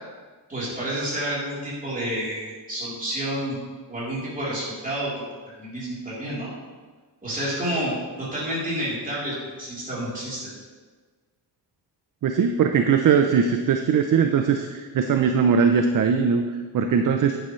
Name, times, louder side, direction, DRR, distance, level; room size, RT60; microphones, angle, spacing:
voice 1, 0.5-3.6 3.9-5.2 5.6-6.5 7.2-7.9 8.2-10.5, right 1 dB, 20° right, -8 dB, 3.4 m, -29 dB
voice 2, 12.2-16.4 16.7-17.4, right 6 dB, 50° right, 5 dB, 0.5 m, -20 dB
10.5 x 10.0 x 3.2 m, 1.4 s
wide cardioid pair, 180°, 42 cm